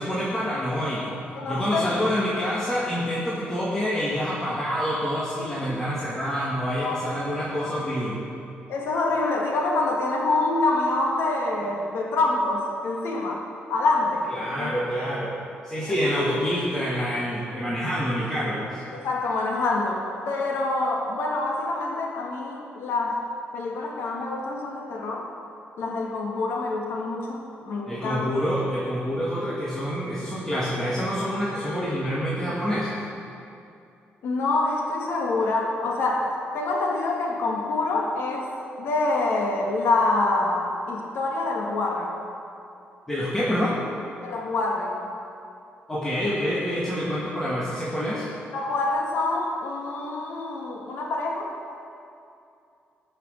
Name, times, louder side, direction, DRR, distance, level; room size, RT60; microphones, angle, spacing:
voice 1, 0.0-1.2 1.5-8.2 14.3-15.4 15.6-18.8 27.9-33.0 43.1-43.8 45.9-48.3, equal, 10° left, -8 dB, 2.1 m, -27 dB
voice 2, 1.3-1.9 6.7-7.0 8.7-13.4 13.7-14.3 14.6-14.7 16.2-16.3 18.9-25.3 25.8-28.3 34.2-38.5 38.8-42.1 44.2-45.0 48.1-48.2 48.5-51.5, left 2 dB, 80° left, 0 dB, 2.0 m, -26 dB
19.5 x 6.6 x 6.5 m, 2.6 s
cardioid pair, 140°, 4 cm